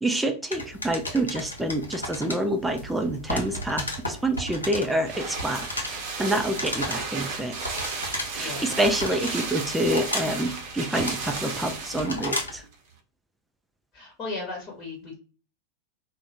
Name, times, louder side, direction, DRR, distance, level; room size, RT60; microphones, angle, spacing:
voice 1, 0.0-7.6 8.3-12.6, right 1 dB, 5° right, 4 dB, 0.3 m, -27 dB
sound 1, 0.5-12.6, left 1 dB, 80° left, 0.6 m, -35 dB
sound 2, 4.2-12.4 12.7-12.8, right 4 dB, 45° right, 0.7 m, -34 dB
voice 2, 8.4-8.8 13.9-15.2, left 3 dB, 30° left, -3 dB, 1.0 m, -36 dB
2.6 x 2.1 x 2.6 m, 0.37 s
figure-of-eight pair, 90°, 0 cm